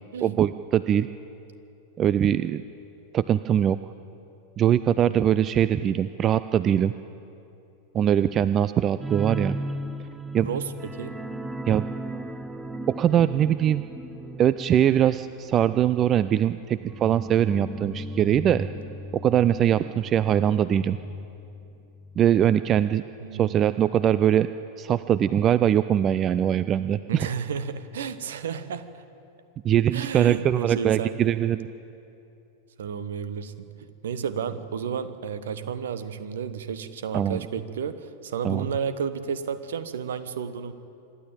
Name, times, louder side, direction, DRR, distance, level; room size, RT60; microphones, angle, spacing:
voice 1, 0.2-1.1 2.0-2.6 3.1-3.8 4.6-6.9 7.9-9.6 10.3-10.5 11.7-11.8 12.9-13.8 14.4-18.7 19.1-21.0 22.2-23.0 23.3-24.5 24.8-27.3 29.6-31.7 37.1-37.5 38.4-38.7, right 10 dB, 30° right, 14 dB, 0.4 m, -22 dB
sound 1, 9.0-22.3 22.6-22.8 23.1-23.2, right 1 dB, 10° right, 0.9 m, -37 dB
voice 2, 10.4-11.1 23.2-23.6 27.1-29.0 29.9-31.2 32.8-33.5 34.0-40.7, right 7 dB, 60° right, 13 dB, 1.1 m, -32 dB
25.5 x 11.5 x 8.9 m, 2.8 s
figure-of-eight pair, 90°, 0 cm